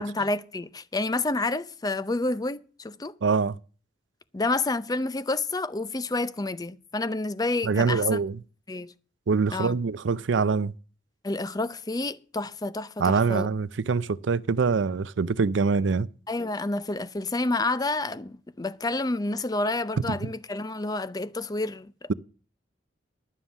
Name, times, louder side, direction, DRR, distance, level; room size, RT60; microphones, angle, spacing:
voice 1, 0.0-3.1 4.3-8.2 8.7-8.9 9.5-9.8 11.2-13.5 16.3-22.1, left 2 dB, 20° left, 0.5 m, -29 dB
voice 2, 3.2-3.6 7.6-8.4 9.3-10.7 13.0-16.1 20.1-20.3, right 4 dB, 75° right, 0.5 m, -24 dB
11.5 x 7.4 x 7.0 m
head